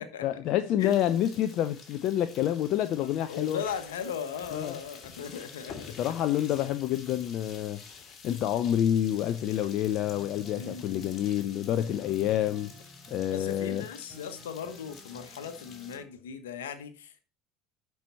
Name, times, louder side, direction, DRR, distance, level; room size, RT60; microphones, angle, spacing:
voice 1, 0.0-3.6 4.5-4.8 6.0-8.0 8.2-12.7 13.1-13.8, left 11 dB, 50° left, 0.5 m, -28 dB
sound 1, 0.8-16.0, left 5 dB, 35° left, 2.6 m, -49 dB
voice 2, 3.3-6.1 10.5-11.0 13.3-17.2, left 7 dB, 75° left, 1.2 m, -38 dB
sound 2, 10.0-16.1, left 1 dB, 25° right, 4.1 m, -54 dB
11.0 x 4.7 x 4.2 m
figure-of-eight pair, 70°, 0 cm